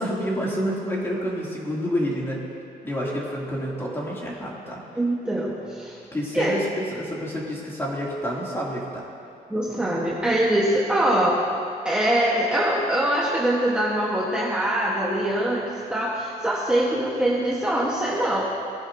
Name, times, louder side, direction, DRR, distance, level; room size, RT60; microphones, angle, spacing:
voice 1, 0.0-2.4 2.8-4.8 6.1-9.0, equal, 15° left, -5 dB, 2.5 m, -28 dB
voice 2, 4.9-6.0 6.3-6.6 9.5-11.5 11.8-15.6 15.9-18.5, right 1 dB, 5° right, -6 dB, 1.2 m, -23 dB
19.5 x 10.0 x 2.7 m, 2.6 s
cardioid pair, 140°, 16 cm